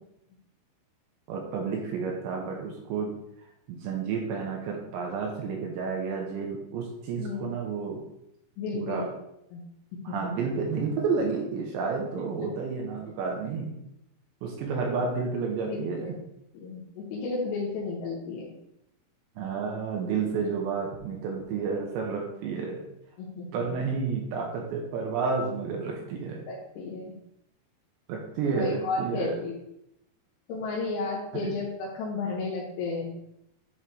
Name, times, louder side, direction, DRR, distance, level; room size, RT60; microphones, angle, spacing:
voice 1, 1.3-3.1 3.7-8.0 8.7-9.1 10.0-13.8 14.4-16.1 19.4-22.8 23.5-26.4 28.1-29.4 31.3-31.5, right 5 dB, 75° right, 0 dB, 3.0 m, -31 dB
voice 2, 8.6-9.1 9.5-9.6 10.1-10.3 12.4-12.5 15.7-16.1 16.5-18.5 23.2-23.7 26.5-27.2 28.5-29.6 30.5-33.1, left 3 dB, 80° left, -5 dB, 3.7 m, -33 dB
11.0 x 4.4 x 3.2 m, 0.79 s
omnidirectional pair, 5.6 m